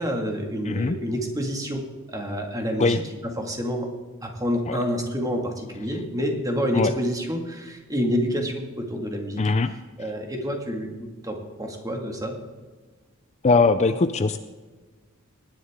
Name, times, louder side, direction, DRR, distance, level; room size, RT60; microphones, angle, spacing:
voice 1, 0.0-3.9 4.2-9.4 10.0-12.3 13.9-14.0, equal, 15° right, 2 dB, 2.0 m, -28 dB
voice 2, 0.7-1.0 2.8-3.0 4.7-4.8 6.7-6.9 9.4-9.7 13.4-14.4, left 3 dB, 30° left, 10 dB, 0.4 m, -20 dB
20.0 x 10.0 x 3.7 m, 1.3 s
head